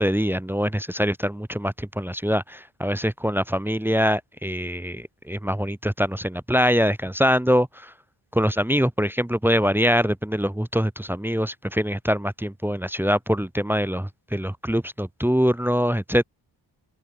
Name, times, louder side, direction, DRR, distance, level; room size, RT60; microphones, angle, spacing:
voice 1, 0.0-7.9 8.3-16.2, equal, 5° right, 1.1 m, -24 dB
open air
wide cardioid pair, 150°, 48 cm